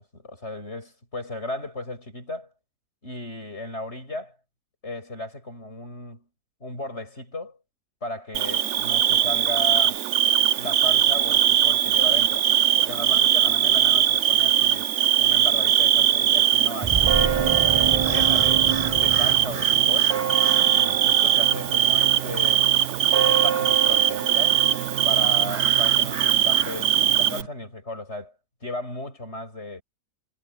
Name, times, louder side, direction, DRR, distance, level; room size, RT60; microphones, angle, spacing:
voice 1, 0.0-2.5 3.0-4.4 4.8-6.3 6.6-7.6 8.0-10.0 10.5-12.5 12.8-14.9 15.2-17.4 17.9-18.7 19.0-20.2 20.7-22.7 23.2-24.6 25.0-28.3 28.6-29.8, left 1 dB, 45° left, 7.8 m, -35 dB
Bird / Cricket, 8.3-27.4, right 10 dB, 60° right, 1.0 m, -21 dB
sound 1, 16.8-20.3, right 5 dB, 30° right, 0.8 m, -28 dB
sound 2, 17.0-27.5, right 8 dB, 80° right, 1.9 m, -30 dB
omnidirectional pair, 1.5 m